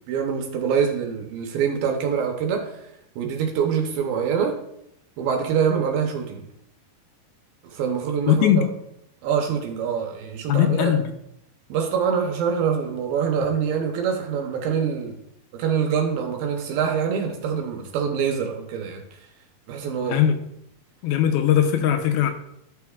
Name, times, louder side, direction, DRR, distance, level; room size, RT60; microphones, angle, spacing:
voice 1, 0.1-2.9 3.2-4.6 5.2-6.4 7.6-8.5 9.2-10.9 11.7-15.2 15.5-19.0 19.7-20.2, right 7 dB, 75° right, 3 dB, 2.4 m, -25 dB
voice 2, 8.3-8.7 10.5-11.1 20.1-20.4 21.0-22.3, left 9 dB, 80° left, 6 dB, 2.4 m, -19 dB
11.5 x 6.8 x 2.4 m, 0.78 s
omnidirectional pair, 4.6 m